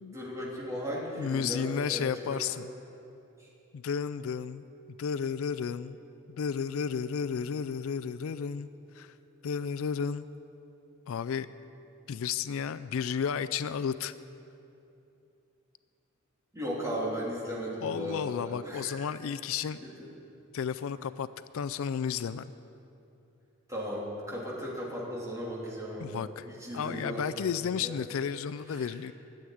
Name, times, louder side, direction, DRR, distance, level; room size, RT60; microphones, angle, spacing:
voice 1, 0.1-2.6 3.4-3.5 16.5-19.0 19.8-20.1 23.7-27.5 27.8-28.0 28.7-28.9, equal, 15° right, -5 dB, 3.1 m, -37 dB
voice 2, 1.2-2.7 3.7-4.6 5.0-6.0 6.3-8.7 8.9-9.1 9.4-10.3 11.1-11.5 12.1-14.1 17.8-19.8 20.5-21.3 21.5-22.4 26.0-26.5 26.7-29.1, left 7 dB, 70° left, 13 dB, 0.4 m, -32 dB
13.0 x 7.9 x 9.8 m, 2.8 s
head